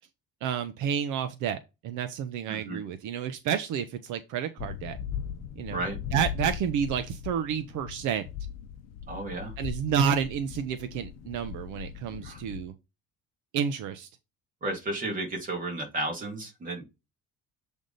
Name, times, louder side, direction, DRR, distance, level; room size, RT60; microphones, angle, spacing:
voice 1, 0.4-5.0 5.6-5.8 6.1-8.2 9.6-12.7 13.5-14.1, right 8 dB, 65° right, 0.7 m, -30 dB
voice 2, 2.5-2.8 5.7-6.0 9.1-9.5 12.2-12.4 14.6-16.9, right 2 dB, 25° right, 2.0 m, -33 dB
sound 1, 4.6-12.6, left 8 dB, 50° left, 0.8 m, -39 dB
7.6 x 3.5 x 4.0 m
cardioid pair, 180°, 32 cm